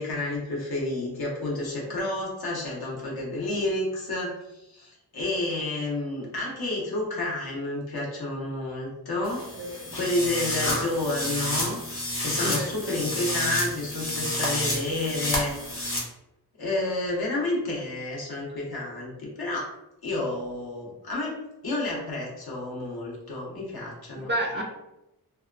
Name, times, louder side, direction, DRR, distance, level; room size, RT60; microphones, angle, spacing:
voice 1, 0.0-9.4 9.9-11.8 12.2-15.5 16.6-19.7 20.0-24.6, left 2 dB, 70° left, -3 dB, 0.8 m, -30 dB
sound 1, 9.2-16.0, left 1 dB, 35° left, 0.8 m, -30 dB
voice 2, 9.6-10.0 12.4-12.7 24.2-24.6, right 1 dB, 30° right, -1 dB, 0.4 m, -30 dB
2.7 x 2.2 x 2.4 m, 0.88 s
wide cardioid pair, 95°, 39 cm